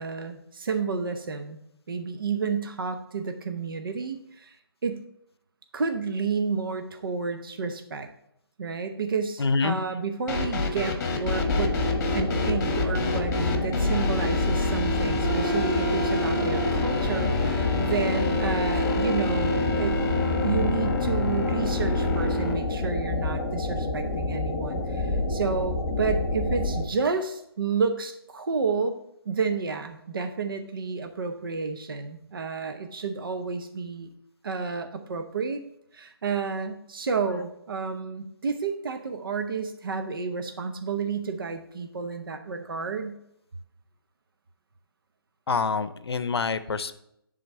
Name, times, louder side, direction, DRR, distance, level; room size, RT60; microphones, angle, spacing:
voice 1, 0.0-1.6 1.9-4.6 4.8-5.0 5.7-8.1 8.6-11.8 12.1-20.0 20.4-28.9 29.3-34.1 34.4-35.6 35.9-43.1, right 5 dB, 60° right, 6 dB, 0.7 m, -30 dB
voice 2, 9.4-9.8 45.5-46.9, left 4 dB, 80° left, 13 dB, 0.6 m, -26 dB
sound 1, 10.3-22.5, left 2 dB, 40° left, 1.3 m, -27 dB
sound 2, 11.2-26.8, left 2 dB, 5° left, 0.6 m, -29 dB
sound 3, 15.2-21.6, left 1 dB, 25° left, 3.0 m, -33 dB
10.0 x 3.8 x 4.2 m, 0.77 s
hypercardioid pair, 160°, 13 cm